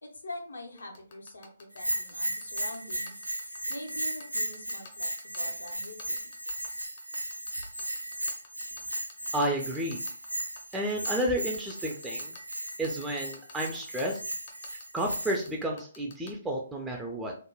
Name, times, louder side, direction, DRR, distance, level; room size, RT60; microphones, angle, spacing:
voice 1, 0.0-3.2 3.7-6.3, left 1 dB, 75° left, 3 dB, 0.7 m, -44 dB
sound 1, 0.8-16.3, left 5 dB, 40° left, 0.6 m, -48 dB
Bell, 1.7-15.5, right 1 dB, 85° right, 0.4 m, -36 dB
voice 2, 9.3-10.0 10.7-12.3 12.8-14.2 14.9-17.3, right 1 dB, 5° right, 0 dB, 0.3 m, -31 dB
3.1 x 2.0 x 2.2 m, 0.42 s
figure-of-eight pair, 130°, 0 cm